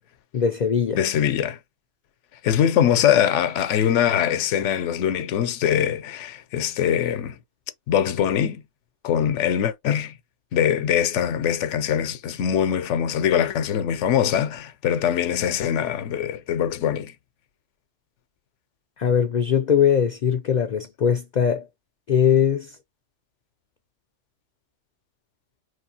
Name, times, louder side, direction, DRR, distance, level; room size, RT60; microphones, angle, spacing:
voice 1, 0.3-1.0 19.0-21.6 22.1-22.8, left 8 dB, 65° left, 0.4 m, -21 dB
voice 2, 0.9-1.6 2.4-7.4 7.9-8.6 9.0-10.2 10.5-17.1, left 9 dB, 80° left, 0.9 m, -22 dB
4.8 x 3.2 x 2.7 m
omnidirectional pair, 1.2 m